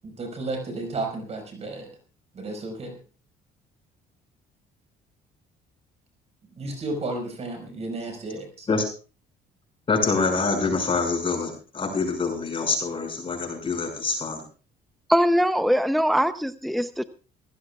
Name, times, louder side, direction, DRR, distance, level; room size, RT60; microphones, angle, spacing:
voice 1, 0.0-1.9 2.3-2.9 6.6-8.7, right 2 dB, 40° right, 4 dB, 5.1 m, -33 dB
voice 2, 9.9-14.4, left 4 dB, 30° left, 3 dB, 5.9 m, -25 dB
voice 3, 15.1-17.0, equal, ahead, 10 dB, 0.6 m, -22 dB
23.5 x 16.0 x 2.4 m, 0.36 s
cardioid pair, 110°, 17 cm